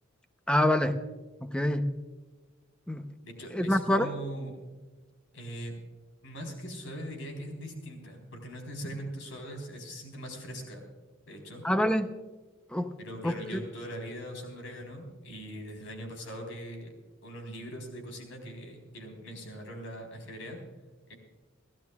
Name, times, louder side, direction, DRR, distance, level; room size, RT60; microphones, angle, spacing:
voice 1, 0.5-1.0 1.4-1.9 2.9-3.0 3.5-4.1 11.6-12.1 12.7-12.9 13.2-13.3, left 1 dB, 5° left, 8 dB, 0.7 m, -26 dB
voice 2, 3.2-4.6 5.3-5.8 6.2-10.8 11.3-11.6 13.0-16.9 17.2-20.6 21.1-21.2, equal, 75° left, 3 dB, 4.0 m, -41 dB
30.0 x 12.0 x 2.4 m, 1.3 s
head